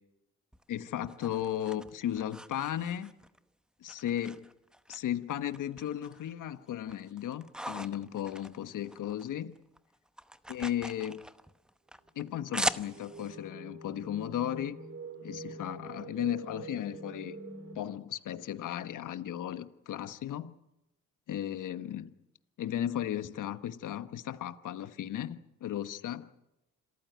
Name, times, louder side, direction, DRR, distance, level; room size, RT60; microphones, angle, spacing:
sound 1, 0.5-3.4 3.9-5.0 5.3-6.3 6.7-9.3 9.6-13.4, equal, ahead, 0.9 m, -40 dB
voice 1, 0.7-3.1 3.8-4.5 4.9-9.6 10.5-11.2 12.1-14.8 15.2-17.4 17.7-20.5 21.3-22.1 22.6-26.3, left 11 dB, 70° left, 1.2 m, -35 dB
sound 2, 12.3-17.8, right 3 dB, 40° right, 5.4 m, -45 dB
27.0 x 14.0 x 9.3 m
cardioid pair, 95°, 32 cm